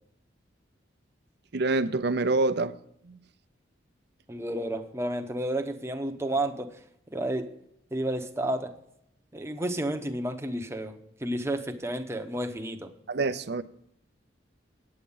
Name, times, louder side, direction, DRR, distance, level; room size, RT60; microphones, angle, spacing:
voice 1, 1.5-2.8 3.0-3.2 13.1-13.6, right 3 dB, 60° right, 0.6 m, -26 dB
voice 2, 4.3-6.8 7.1-7.5 7.9-8.7 9.3-12.9, right 1 dB, 15° right, 0.9 m, -31 dB
9.0 x 8.7 x 5.4 m
head